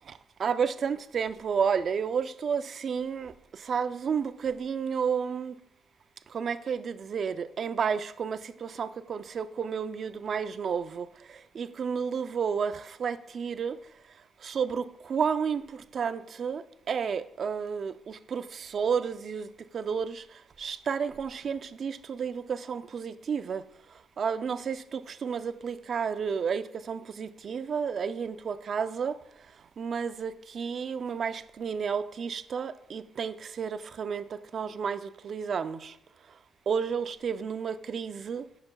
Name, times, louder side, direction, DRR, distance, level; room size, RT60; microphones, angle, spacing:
voice 1, 0.4-3.3 3.6-5.6 6.3-11.1 11.5-13.8 14.4-15.6 15.9-19.5 19.7-20.2 20.6-23.6 24.2-29.1 29.8-34.2 34.5-35.9 36.7-38.4, right 6 dB, 50° right, 0.4 m, -31 dB
14.0 x 5.7 x 2.2 m
cardioid pair, 90°, 0 cm